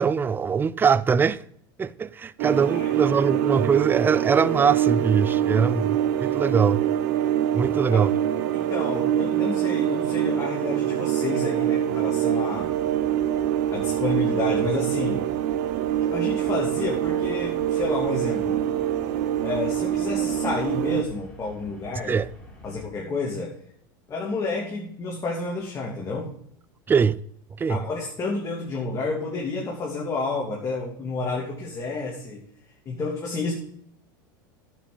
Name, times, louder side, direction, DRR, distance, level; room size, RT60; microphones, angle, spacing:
voice 1, 0.0-1.4 1.8-6.8 7.5-8.1 22.1-22.3 26.9-27.2 27.6-27.8, right 6 dB, 20° right, 0.5 m, -22 dB
sound 1, 2.4-21.0, right 11 dB, 65° right, 1.0 m, -25 dB
voice 2, 2.6-2.9 7.7-8.1 8.5-12.7 13.7-15.2 16.1-18.6 19.4-22.2 22.6-23.5 24.1-26.3 27.7-32.4 32.8-33.5, left 3 dB, 30° left, 2.9 m, -30 dB
sound 2, 12.5-22.9, left 1 dB, 5° left, 3.7 m, -47 dB
10.0 x 7.4 x 5.2 m
hypercardioid pair, 100°, 11 cm